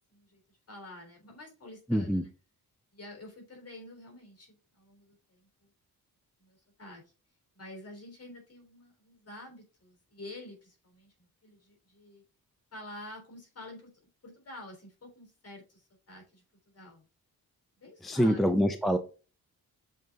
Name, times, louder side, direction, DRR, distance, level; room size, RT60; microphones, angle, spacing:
voice 1, 0.1-2.3 2.9-5.7 6.4-7.0 7.5-12.2 12.7-13.9 14.2-17.1 17.8-18.5, left 1 dB, 40° left, 3.3 m, -49 dB
voice 2, 1.9-2.3 18.0-19.0, equal, ahead, 0.5 m, -25 dB
7.5 x 3.9 x 3.5 m
wide cardioid pair, 115°, 37 cm